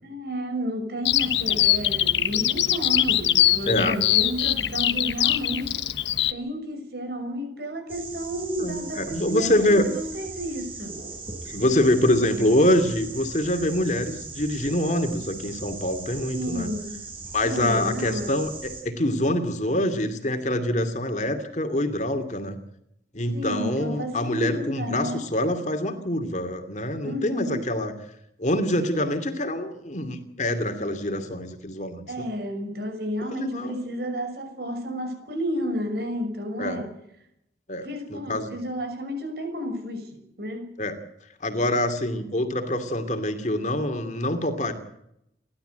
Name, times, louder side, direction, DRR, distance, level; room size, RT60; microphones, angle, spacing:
voice 1, 0.0-5.9 6.3-11.0 16.3-17.1 17.4-18.3 23.3-25.3 27.0-27.6 32.1-36.9 37.8-40.7, equal, 60° right, 6.3 m, -31 dB
Bird vocalization bird call bird song, 1.1-6.3, left 12 dB, 80° left, 1.2 m, -22 dB
voice 2, 3.7-4.0 8.6-9.8 11.5-16.7 17.3-22.6 23.1-27.9 28.4-32.0 33.2-33.8 36.6-36.8 37.7-38.5 40.8-41.0 41.4-44.7, left 1 dB, 40° left, 2.5 m, -25 dB
sound 1, 7.9-18.8, right 4 dB, 30° right, 6.3 m, -39 dB
30.0 x 12.5 x 8.0 m
head